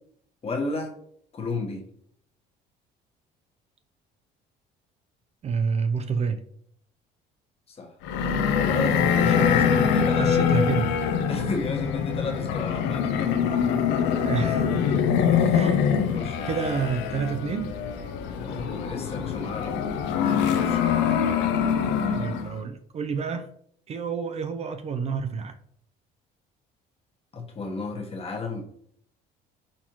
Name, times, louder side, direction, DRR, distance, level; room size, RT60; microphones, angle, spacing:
voice 1, 0.4-0.9 1.3-1.8 7.7-7.9 8.6-10.3 11.3-13.4 15.4-15.5 16.1-16.5 18.4-19.9 20.6-20.8 27.3-28.6, left 3 dB, 35° left, 1 dB, 1.1 m, -32 dB
voice 2, 5.4-6.4 9.2-10.9 14.2-14.7 15.5-15.9 16.5-17.8 22.1-23.5 23.9-25.6, right 5 dB, 35° right, 8 dB, 0.4 m, -29 dB
sound 1, 8.0-22.6, left 7 dB, 85° left, 0.5 m, -24 dB
4.3 x 4.1 x 2.9 m, 0.66 s
cardioid pair, 100°, 18 cm